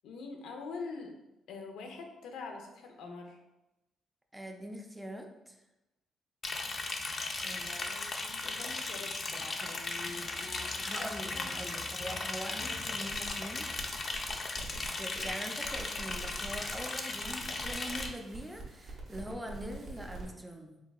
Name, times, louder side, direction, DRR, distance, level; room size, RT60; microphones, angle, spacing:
voice 1, 0.0-3.4 7.8-11.5 11.8-12.2 12.6-12.8, left 4 dB, 85° left, 3 dB, 0.6 m, -45 dB
voice 2, 4.3-5.6 7.4-8.0 10.8-13.7 14.7-20.8, equal, 10° right, 3 dB, 0.6 m, -43 dB
Liquid, 6.4-18.1, left 3 dB, 40° left, 0.5 m, -37 dB
sound 1, 12.9-13.3 13.7-16.9 17.2-20.3, right 2 dB, 60° right, 1.1 m, -46 dB
4.6 x 3.4 x 2.4 m, 0.96 s
cardioid pair, 90°, 0 cm